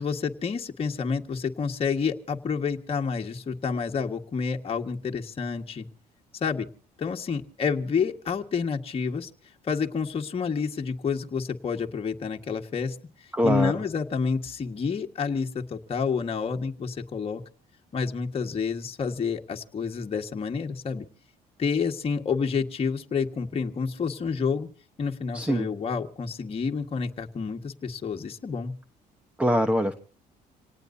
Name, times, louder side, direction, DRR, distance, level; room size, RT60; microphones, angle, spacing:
voice 1, 0.0-5.9 6.3-6.7 7.0-9.3 9.6-13.0 13.4-17.4 17.9-21.1 21.6-24.7 25.0-28.7, left 5 dB, 35° left, 2 dB, 1.8 m, -29 dB
voice 2, 13.3-13.8 25.3-25.7 29.4-29.9, equal, 5° right, 9 dB, 1.2 m, -23 dB
27.0 x 18.5 x 2.8 m, 0.40 s
cardioid pair, 110°, 17 cm